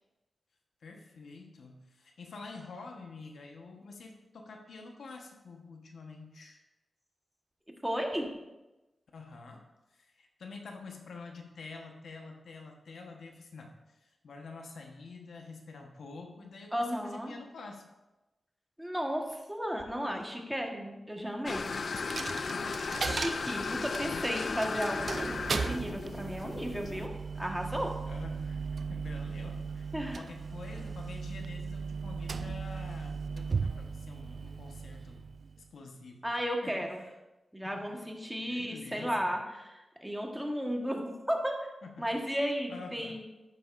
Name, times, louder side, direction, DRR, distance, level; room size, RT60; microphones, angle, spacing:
voice 1, 0.8-6.6 9.1-9.6 9.9-17.8 21.7-23.2 23.6-24.3 28.1-28.6 28.9-29.8 30.2-35.3 35.7-36.3 36.6-37.0 37.7-38.0 38.5-39.2 41.9-42.4 42.7-43.2, left 4 dB, 85° left, 2 dB, 1.2 m, -47 dB
voice 2, 7.8-8.3 16.7-17.3 18.8-21.7 23.0-27.9 29.9-30.2 36.2-37.0 37.5-41.6 42.0-43.2, equal, 5° right, 1 dB, 1.4 m, -34 dB
sound 1, 21.5-27.1, left 4 dB, 60° left, 0.4 m, -36 dB
Coin (dropping), 22.0-35.7, right 5 dB, 60° right, 0.3 m, -37 dB
11.0 x 7.7 x 2.6 m, 1.0 s
wide cardioid pair, 80°, 0 cm